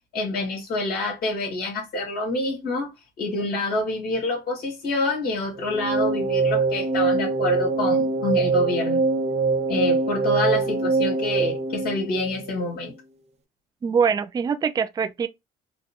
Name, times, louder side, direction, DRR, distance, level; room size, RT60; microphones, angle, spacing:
voice 1, 0.1-2.9 3.2-9.0 9.7-12.9, left 2 dB, 65° left, 2.0 m, -27 dB
sound 1, 5.5-12.8, right 4 dB, 40° right, 0.7 m, -23 dB
voice 2, 13.8-15.3, right 6 dB, 25° right, 0.3 m, -23 dB
4.4 x 2.2 x 2.8 m
cardioid pair, 110°, 17 cm